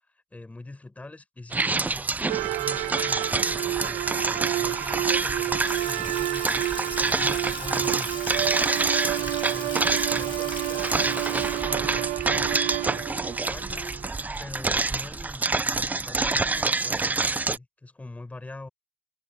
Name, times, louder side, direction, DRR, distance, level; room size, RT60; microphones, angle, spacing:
voice 1, 0.3-9.7 10.1-14.0 14.4-18.7, left 2 dB, 10° left, 6.6 m, -44 dB
sound 1, 1.5-17.6, right 3 dB, 10° right, 0.7 m, -27 dB
sound 2, 2.3-14.1, right 18 dB, 65° right, 1.4 m, -30 dB
Water tap faucet / Sink (filling or washing) / Splash splatter, 5.2-14.0, left 8 dB, 35° left, 7.5 m, -41 dB
open air
supercardioid pair, 120°, 14 cm